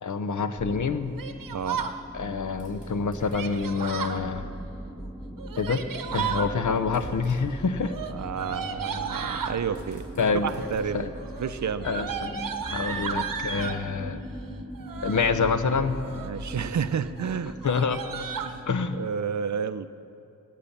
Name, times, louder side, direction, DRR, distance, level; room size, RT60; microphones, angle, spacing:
voice 1, 0.0-1.2 2.1-4.5 5.6-5.8 6.1-7.9 10.2-10.5 10.9-11.1 11.8-12.3 12.7-14.2 15.0-16.0 17.6-18.0 18.7-19.0, left 5 dB, 65° left, 10 dB, 0.8 m, -27 dB
sound 1, 0.6-19.0, equal, ahead, 0.6 m, -40 dB
Yell, 1.2-2.0 3.3-4.2 5.4-6.5 7.8-9.6 10.4-10.9 11.2-13.8 14.7-15.3 15.9-16.4 16.8-16.9 17.2-17.3 17.6-18.5, right 6 dB, 80° right, 0.8 m, -34 dB
voice 2, 1.5-1.8 8.1-10.0 10.3-11.1 11.4-11.9 16.2-17.6 18.4-18.7 19.0-19.9, right 7 dB, 60° right, 13 dB, 0.6 m, -30 dB
sound 2, 2.6-4.2 4.8-4.9 6.1-6.2 6.8-7.7 9.2-9.3 9.7-11.6, equal, 25° left, 3.9 m, -46 dB
17.0 x 8.6 x 7.2 m, 2.7 s
wide cardioid pair, 120°, 33 cm